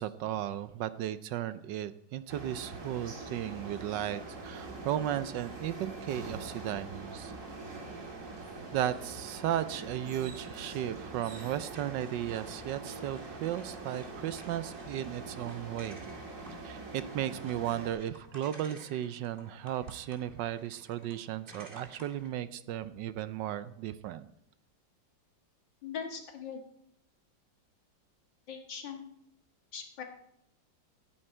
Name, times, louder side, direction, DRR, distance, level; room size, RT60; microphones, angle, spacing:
voice 1, 0.0-7.3 8.7-16.0 16.6-24.3, right 11 dB, 75° right, 14 dB, 1.2 m, -35 dB
sound 1, 2.3-17.9, right 3 dB, 45° right, 2.1 m, -44 dB
sound 2, 11.2-22.3, right 1 dB, 30° right, 2.1 m, -54 dB
voice 2, 25.8-26.6 28.5-29.1 29.7-30.0, left 7 dB, 70° left, 3 dB, 2.3 m, -40 dB
17.0 x 8.8 x 4.4 m, 0.75 s
omnidirectional pair, 2.1 m